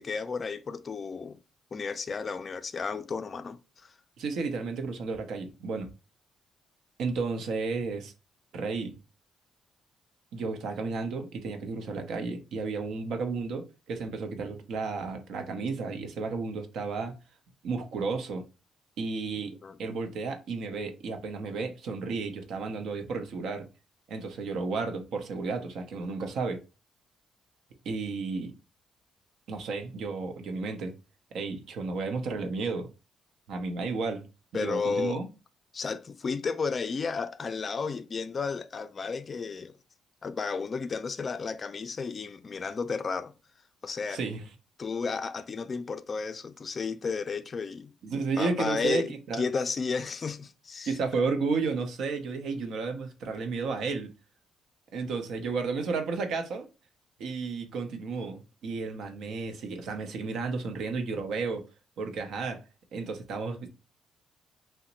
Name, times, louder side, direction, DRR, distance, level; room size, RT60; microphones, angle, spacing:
voice 1, 0.0-1.4 1.7-3.9 19.6-19.8 34.5-35.2 35.7-39.7 40.2-43.4 43.8-44.2 44.8-48.0 48.4-50.9, left 5 dB, 40° left, 0.3 m, -33 dB
voice 2, 4.2-5.9 7.0-8.1 8.5-9.0 10.3-17.1 17.6-18.4 19.0-23.7 24.1-26.6 27.8-28.5 29.5-30.9 31.3-32.9 33.5-34.3 34.5-35.3 44.1-44.4 48.0-49.0 49.3-49.4 50.9-54.1 54.9-56.7 57.2-61.7 62.0-62.6 62.9-63.7, right 4 dB, 75° right, 0.6 m, -32 dB
2.8 x 2.1 x 3.9 m
cardioid pair, 90°, 0 cm